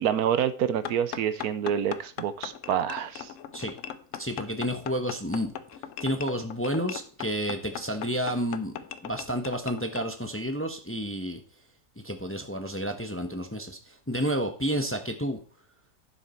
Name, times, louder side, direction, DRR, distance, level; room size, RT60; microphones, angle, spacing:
voice 1, 0.0-3.3, right 9 dB, 80° right, 14 dB, 1.2 m, -27 dB
sound 1, 0.8-10.1, left 9 dB, 65° left, 1.0 m, -39 dB
voice 2, 4.2-5.5 6.0-8.7 9.0-11.4 12.0-15.4, equal, 10° left, 6 dB, 0.8 m, -30 dB
11.0 x 6.6 x 4.4 m, 0.42 s
omnidirectional pair, 1.6 m